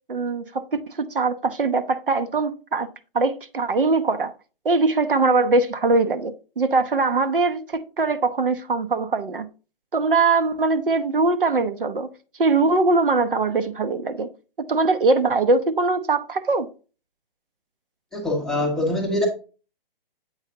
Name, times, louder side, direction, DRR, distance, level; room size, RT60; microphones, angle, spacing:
voice 1, 0.1-2.9 3.1-4.3 4.6-9.5 9.9-12.1 12.4-14.3 14.7-16.7, right 3 dB, 65° right, 0.9 m, -21 dB
voice 2, 18.1-19.3, left 1 dB, ahead, 0.7 m, -24 dB
8.1 x 4.9 x 2.7 m
figure-of-eight pair, 135°, 29 cm